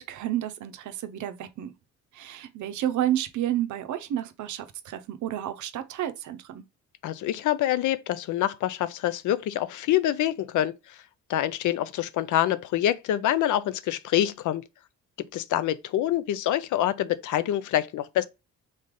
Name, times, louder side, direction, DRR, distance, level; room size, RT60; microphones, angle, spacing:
voice 1, 0.0-1.7 2.1-6.6, right 12 dB, 70° right, 0.7 m, -31 dB
voice 2, 7.0-11.0 11.3-14.6 15.2-18.3, left 12 dB, 75° left, 0.6 m, -26 dB
3.9 x 3.2 x 3.7 m
cardioid pair, 145°, 31 cm